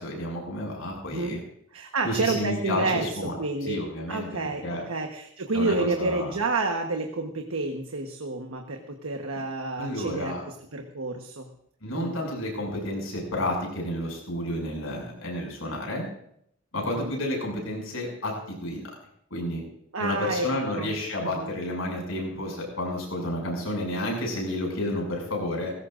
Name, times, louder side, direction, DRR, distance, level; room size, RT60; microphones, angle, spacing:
voice 1, 0.0-1.4 2.0-3.3 3.7-4.3 4.6-4.8 5.5-6.3 9.8-10.4 11.8-16.1 16.7-18.3 18.6-18.8 19.3-19.6 20.0-25.7, left 1 dB, 80° left, 0 dB, 6.7 m, -30 dB
voice 2, 1.7-3.1 3.4-3.8 4.1-11.5 11.9-12.1 16.9-17.1 19.9-20.5 20.7-20.9 21.4-21.5, right 3 dB, 90° right, 3 dB, 1.2 m, -29 dB
20.5 x 16.5 x 2.6 m, 0.70 s
head